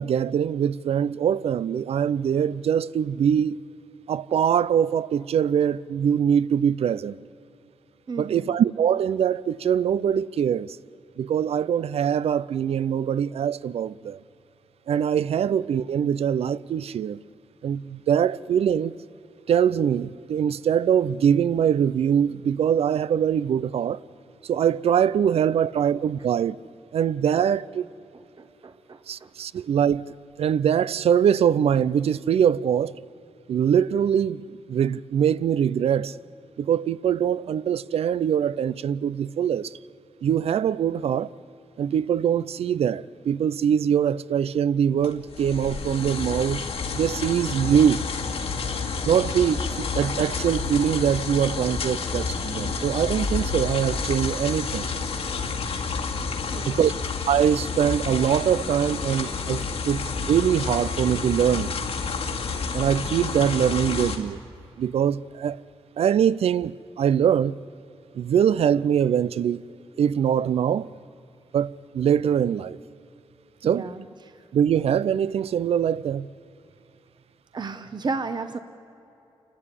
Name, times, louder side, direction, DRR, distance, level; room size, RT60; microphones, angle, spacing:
voice 1, 0.0-3.6 4.1-7.2 8.2-10.8 11.2-14.2 14.9-17.2 17.6-18.9 19.5-24.0 24.4-26.6 26.9-27.9 29.1-30.1 30.4-33.0 33.5-36.1 36.6-39.8 40.2-41.3 41.8-46.6 46.9-48.0 49.1-54.9 56.6-56.9 57.3-60.0 60.3-61.7 62.7-64.4 64.8-65.6 66.0-67.6 68.1-69.6 70.0-70.9 71.5-72.8 73.6-73.9 74.5-76.3, right 8 dB, 70° right, 0.5 m, -23 dB
voice 2, 8.1-8.5 28.1-29.3 29.5-29.6 56.5-56.9 73.6-74.0 77.5-78.6, right 4 dB, 45° right, 1.0 m, -34 dB
sound 1, 45.0-64.2, left 4 dB, 75° left, 2.3 m, -29 dB
28.5 x 12.5 x 9.9 m
cardioid pair, 80°, 11 cm